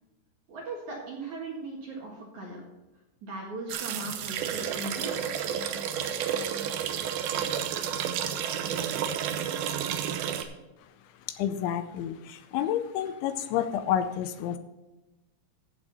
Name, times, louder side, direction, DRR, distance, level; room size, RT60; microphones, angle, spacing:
voice 1, 0.5-2.6 3.2-5.4, right 2 dB, 55° right, -2 dB, 2.3 m, -38 dB
sound 1, 3.7-10.4, right 8 dB, 90° right, 2.1 m, -31 dB
voice 2, 11.3-14.6, left 10 dB, 80° left, 10 dB, 2.9 m, -29 dB
15.5 x 7.2 x 4.1 m, 1.0 s
omnidirectional pair, 5.5 m